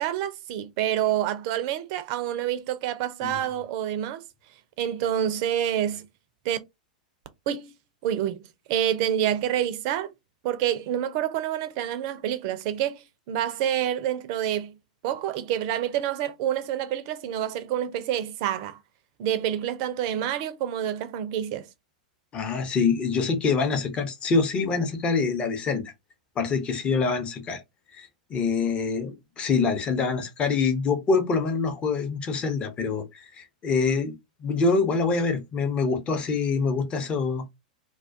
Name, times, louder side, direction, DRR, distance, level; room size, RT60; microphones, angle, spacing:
voice 1, 0.0-4.2 4.8-6.1 6.5-6.6 7.5-7.7 8.0-10.1 10.4-14.8 15.0-18.8 19.2-21.7, right 11 dB, 45° right, 0.4 m, -27 dB
voice 2, 22.3-25.9 26.4-27.6 27.9-34.1 34.4-37.5, left 4 dB, 25° left, 0.6 m, -25 dB
2.2 x 2.2 x 2.5 m
figure-of-eight pair, 95°, 4 cm